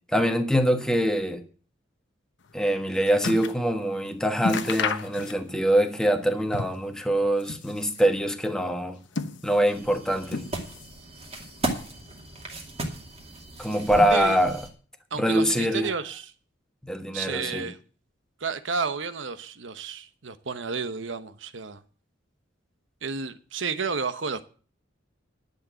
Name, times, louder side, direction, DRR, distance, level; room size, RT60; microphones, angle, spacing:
voice 1, 0.1-1.4 2.5-9.0 9.4-10.4 13.6-14.6 15.2-15.9 16.8-17.7, equal, 5° left, 1.2 m, -24 dB
sound 1, 2.5-3.7 4.0-4.1 4.4-5.7 6.0-6.9 7.3-8.2 8.8-9.8 10.3-11.0 11.3-12.0 12.7-12.8, left 4 dB, 70° left, 0.9 m, -33 dB
sound 2, 9.7-14.7, right 1 dB, 35° right, 2.3 m, -35 dB
voice 2, 15.1-16.3 17.1-17.8 18.4-21.8 23.0-24.4, right 5 dB, 70° right, 1.0 m, -31 dB
11.0 x 6.7 x 7.4 m
head